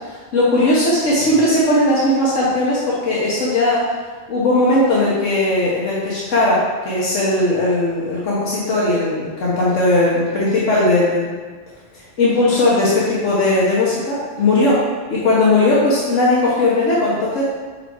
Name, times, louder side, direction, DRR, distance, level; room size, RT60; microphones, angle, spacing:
voice 1, 0.0-3.9 4.3-11.3 11.9-14.8 15.1-17.4, left 2 dB, 85° left, -7 dB, 1.5 m, -18 dB
6.3 x 4.8 x 4.6 m, 1.4 s
omnidirectional pair, 1.2 m